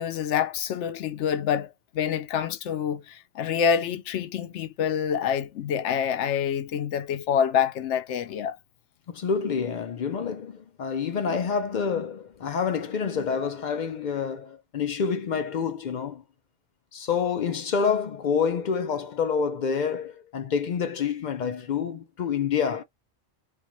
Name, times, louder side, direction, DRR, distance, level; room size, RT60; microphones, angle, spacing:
voice 1, 0.0-8.6, left 8 dB, 85° left, 0.9 m, -27 dB
voice 2, 9.1-16.2 16.9-22.8, left 6 dB, 55° left, 0.5 m, -27 dB
3.5 x 2.4 x 3.0 m
omnidirectional pair, 1.2 m